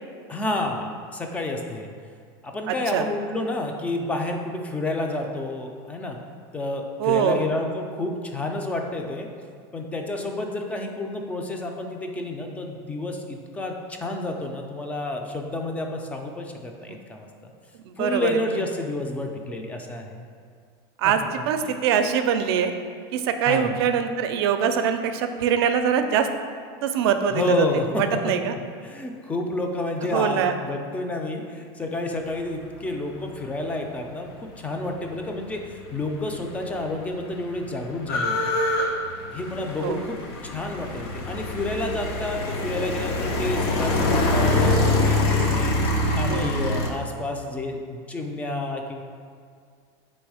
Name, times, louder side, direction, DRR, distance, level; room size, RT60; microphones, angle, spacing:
voice 1, 0.3-1.9 2.4-6.2 6.5-9.3 9.7-17.5 18.0-20.3 21.0-21.7 23.5-23.8 27.3-28.3 28.8-38.5 39.3-49.0, left 2 dB, 10° left, 3 dB, 0.3 m, -30 dB
voice 2, 2.7-3.1 7.0-7.5 17.9-18.3 21.0-21.2 21.5-22.7 23.1-26.3 26.8-27.6 28.0-28.5 30.1-30.5 39.8-40.0 46.3-46.5, right 8 dB, 80° right, 8 dB, 0.4 m, -23 dB
sound 1, 36.2-36.3 36.5-46.9, left 2 dB, 85° left, 0.6 m, -24 dB
3.5 x 3.1 x 4.7 m, 2.2 s
supercardioid pair, 150°, 13 cm